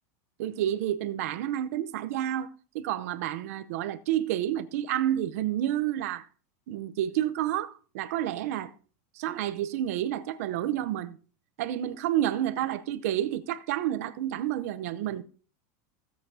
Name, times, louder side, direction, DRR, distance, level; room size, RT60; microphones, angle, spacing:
voice 1, 0.4-6.3 6.7-8.7 9.1-11.2 11.6-15.2, right 12 dB, 60° right, 0.7 m, -30 dB
16.5 x 7.6 x 2.7 m
supercardioid pair, 175°, 9 cm